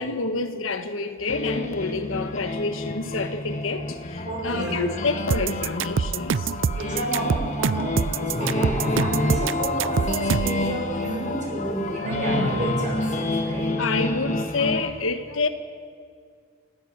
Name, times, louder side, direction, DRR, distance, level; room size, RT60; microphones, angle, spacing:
voice 1, 0.0-3.8 4.4-6.4 12.0-12.4 13.8-15.5, left 3 dB, 80° left, 9 dB, 1.3 m, -28 dB
sound 1, 1.3-14.9, left 2 dB, 35° left, 1.6 m, -29 dB
voice 2, 4.2-4.8 6.7-14.0, right 1 dB, 40° right, -1 dB, 6.8 m, -29 dB
Piano, 4.3-7.0 7.4-7.5, equal, 5° right, 4.7 m, -46 dB
sound 2, 5.3-10.6, right 5 dB, 65° right, 0.5 m, -25 dB
29.5 x 13.0 x 8.8 m, 2.1 s
head